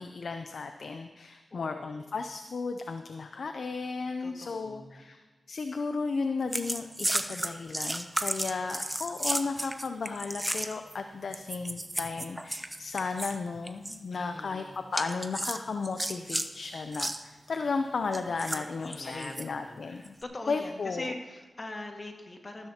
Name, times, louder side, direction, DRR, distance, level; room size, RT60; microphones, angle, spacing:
voice 1, 0.0-5.2 5.5-14.6 14.9-20.1 20.5-21.1, left 4 dB, 75° left, 7 dB, 0.6 m, -34 dB
voice 2, 1.5-2.2 4.2-5.1 14.1-14.8 18.5-22.7, left 2 dB, 40° left, 3 dB, 1.8 m, -43 dB
sound 1, 6.5-10.9 11.3-13.4 13.6-14.0 14.9-16.5 16.9-17.2 18.1-19.5 20.0-20.2, right 1 dB, 15° right, 0.8 m, -33 dB
14.0 x 13.0 x 2.9 m, 1.3 s
cardioid pair, 60°, 0 cm